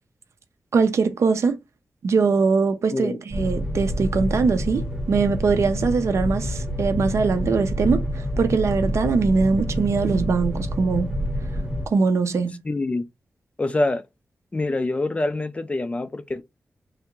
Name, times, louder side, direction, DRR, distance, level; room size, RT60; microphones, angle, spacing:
voice 1, 0.7-1.6 2.0-11.1 11.9-12.6, right 4 dB, 75° right, 0.5 m, -22 dB
sound 1, 3.3-11.9, equal, 10° right, 0.9 m, -27 dB
voice 2, 12.6-13.0 13.6-14.0 14.5-16.4, left 2 dB, 25° left, 0.3 m, -25 dB
3.3 x 2.4 x 3.0 m
wide cardioid pair, 115°, 5 cm